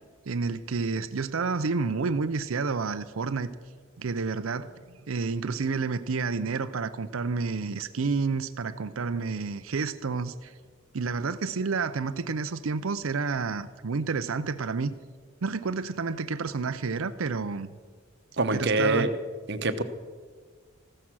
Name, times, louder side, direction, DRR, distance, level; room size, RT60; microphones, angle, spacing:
voice 1, 0.3-3.5 4.0-4.7 5.1-10.5 10.9-14.9 15.4-17.7 18.5-19.1, right 4 dB, 80° right, 12 dB, 0.6 m, -30 dB
voice 2, 18.4-19.1 19.5-19.8, right 2 dB, 55° right, 10 dB, 1.0 m, -25 dB
15.0 x 13.0 x 6.3 m, 1.5 s
head